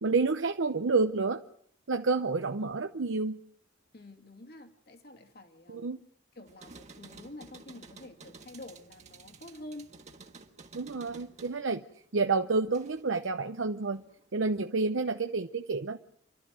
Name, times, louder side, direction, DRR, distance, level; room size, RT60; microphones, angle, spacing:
voice 1, 0.0-1.4 1.9-3.4 5.7-6.0 10.7-11.8 12.1-14.0 14.3-16.0, right 4 dB, 75° right, 7 dB, 0.8 m, -29 dB
voice 2, 3.9-5.9 6.4-9.9, left 1 dB, 55° left, 4 dB, 2.6 m, -48 dB
sound 1, 6.5-13.2 13.5-14.4, right 3 dB, 35° right, 1.6 m, -53 dB
29.0 x 12.5 x 7.7 m, 0.66 s
head